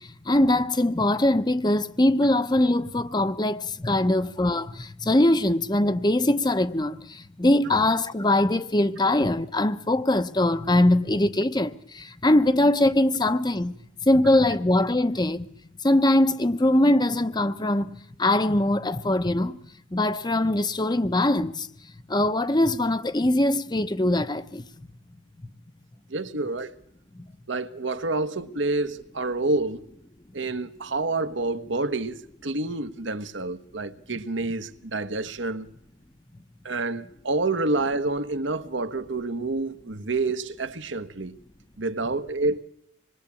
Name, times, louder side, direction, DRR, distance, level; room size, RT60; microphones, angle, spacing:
voice 1, 0.0-13.8 14.1-15.5 15.8-19.6 19.9-21.7 22.1-24.6 27.1-27.3, left 1 dB, 20° left, 0.9 m, -22 dB
voice 2, 26.1-26.7 27.5-29.8 30.3-35.7 36.6-41.4 41.8-42.6, right 2 dB, 75° right, 1.4 m, -28 dB
26.5 x 21.0 x 8.5 m
head